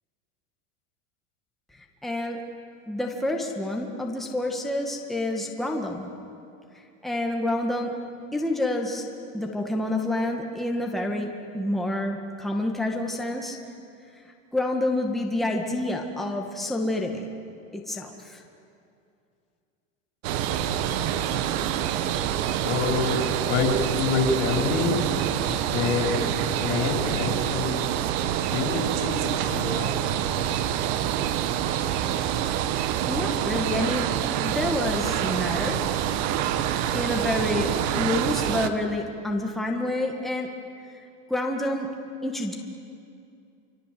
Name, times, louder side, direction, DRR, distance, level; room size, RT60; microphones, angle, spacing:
voice 1, 1.7-2.4 2.9-6.1 6.7-7.9 8.3-9.0 9.3-13.6 14.5-17.3 17.7-18.4 33.1-34.1 34.4-35.8 36.9-40.5 40.9-41.0 41.3-41.9 42.2-42.6, left 1 dB, ahead, 0 dB, 1.9 m, -28 dB
sound 1, 20.2-38.7, right 10 dB, 60° right, 1.5 m, -26 dB
voice 2, 22.6-24.9 25.4-26.1 26.6-27.8 28.5-30.2, left 5 dB, 75° left, 1 dB, 5.0 m, -27 dB
26.5 x 26.0 x 7.8 m, 2.5 s
supercardioid pair, 155°, 35 cm